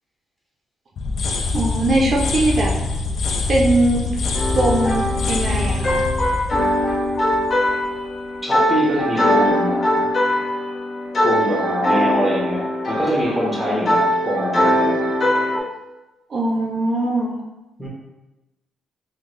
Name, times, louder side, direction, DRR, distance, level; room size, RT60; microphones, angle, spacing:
sound 1, 1.0-7.8, left 3 dB, 60° left, 0.3 m, -24 dB
voice 1, 1.5-2.8 3.5-4.1 4.5-6.0 16.3-17.4, right 1 dB, 45° right, -2 dB, 0.5 m, -20 dB
sound 2, 4.3-15.6, left 1 dB, 35° left, 0.9 m, -21 dB
voice 2, 8.4-10.1 11.2-15.0 17.8-17.9, equal, 5° left, -4 dB, 1.1 m, -24 dB
3.5 x 2.1 x 3.1 m, 1.0 s
cardioid pair, 90°, 0 cm